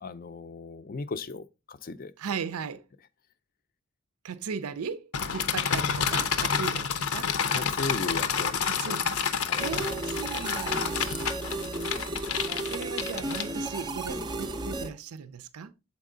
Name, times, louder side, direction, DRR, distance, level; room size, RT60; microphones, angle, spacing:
voice 1, 0.0-2.1 7.5-9.0 9.4-9.6, left 3 dB, 40° left, 0.4 m, -36 dB
voice 2, 2.2-2.8 4.2-7.3 8.6-9.2 9.6-11.0 12.6-15.7, right 6 dB, 85° right, 0.5 m, -37 dB
sound 1, 5.1-13.9, left 6 dB, 85° left, 0.7 m, -29 dB
sound 2, 9.6-14.9, right 2 dB, 20° right, 0.4 m, -34 dB
7.3 x 4.5 x 3.7 m
head